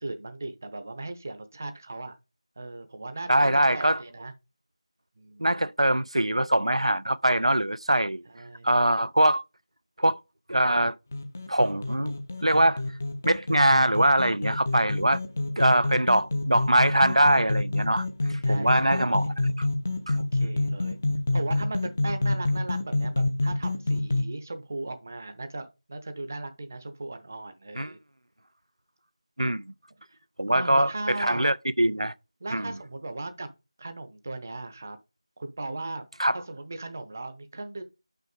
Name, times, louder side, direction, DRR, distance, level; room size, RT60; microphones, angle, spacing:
voice 1, 0.0-2.2 2.6-4.3 5.2-5.5 8.2-8.8 18.4-19.3 20.2-21.0 21.3-28.0 30.1-30.2 30.5-31.5 32.4-33.5 33.8-35.0 35.4-36.1 36.3-37.8, right 2 dB, 25° right, 0.7 m, -37 dB
voice 2, 3.3-4.0 5.4-8.2 8.6-9.4 10.0-10.2 10.5-10.9 11.5-12.2 12.4-12.8 13.2-15.2 15.6-18.1 18.5-19.3 20.1-20.2 27.8-27.9 29.4-29.6 30.4-32.1 32.5-32.7 36.2-36.4, right 1 dB, 85° right, 0.4 m, -22 dB
sound 1, 11.1-24.2, left 2 dB, 20° left, 0.5 m, -28 dB
5.8 x 5.6 x 5.1 m
figure-of-eight pair, 170°, 3 cm